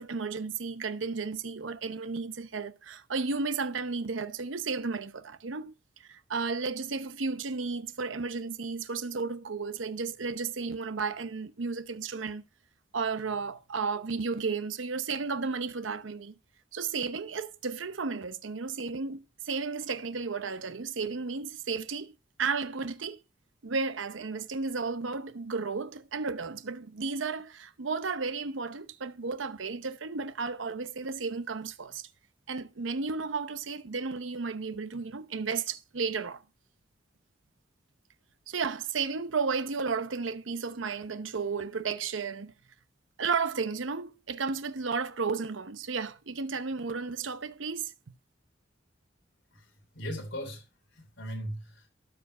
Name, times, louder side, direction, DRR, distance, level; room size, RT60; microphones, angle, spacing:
voice 1, 0.0-5.7 6.0-12.4 12.9-16.4 16.7-22.1 22.4-23.2 23.6-32.1 32.5-36.4 38.5-42.5 43.2-47.9, right 4 dB, 80° right, 0.8 m, -33 dB
voice 2, 49.5-51.9, equal, 70° left, 3.4 m, -39 dB
13.0 x 5.0 x 5.5 m
head